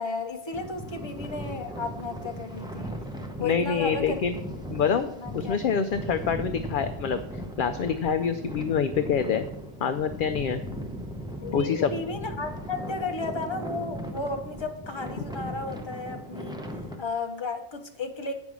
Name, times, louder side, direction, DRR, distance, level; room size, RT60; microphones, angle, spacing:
voice 1, 0.0-2.9 3.4-4.2 5.2-5.6 11.4-16.5 17.0-18.3, left 3 dB, 25° left, 4 dB, 0.9 m, -33 dB
sound 1, 0.5-17.0, equal, 5° right, 0.7 m, -38 dB
voice 2, 3.4-4.4 4.7-7.2 7.6-9.4 9.8-10.6 11.5-11.9, left 6 dB, 60° left, 9 dB, 0.6 m, -26 dB
9.4 x 5.3 x 6.1 m, 0.83 s
omnidirectional pair, 1.1 m